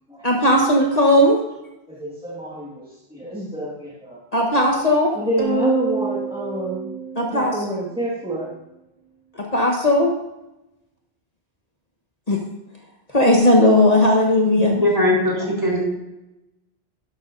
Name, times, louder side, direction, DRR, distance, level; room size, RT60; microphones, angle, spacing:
voice 1, 0.2-1.4 4.3-5.2 7.2-7.5 9.4-10.1 12.3-12.4 13.1-14.7, left 1 dB, 40° left, -1 dB, 1.4 m, -16 dB
voice 2, 1.9-4.2 5.1-6.9 7.3-8.5, right 1 dB, 5° right, -6 dB, 1.8 m, -28 dB
sound 1, 5.4-8.0, right 4 dB, 40° right, 1.8 m, -27 dB
voice 3, 14.6-15.8, left 1 dB, 20° right, -3 dB, 4.1 m, -20 dB
12.0 x 12.0 x 2.6 m, 0.95 s
omnidirectional pair, 1.1 m